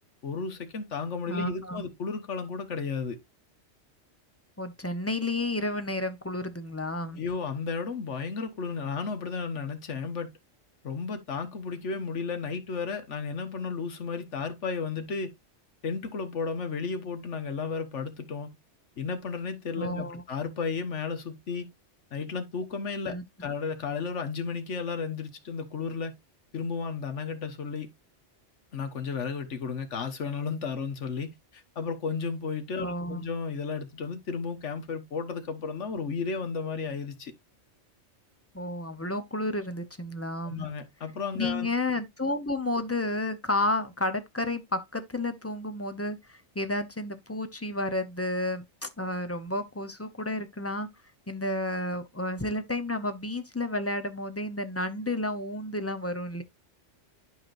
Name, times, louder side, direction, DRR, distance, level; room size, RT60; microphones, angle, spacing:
voice 1, 0.2-3.2 7.1-10.3 10.8-15.3 15.8-18.5 19.0-21.7 22.1-26.2 26.5-27.9 28.7-37.3 40.4-41.7, left 5 dB, 80° left, 1.6 m, -33 dB
voice 2, 1.3-1.8 4.6-7.2 19.8-20.2 23.0-23.2 32.8-33.2 38.5-40.7 41.4-50.9 51.3-56.4, left 1 dB, 15° left, 0.6 m, -31 dB
11.5 x 4.8 x 2.5 m
omnidirectional pair, 1.2 m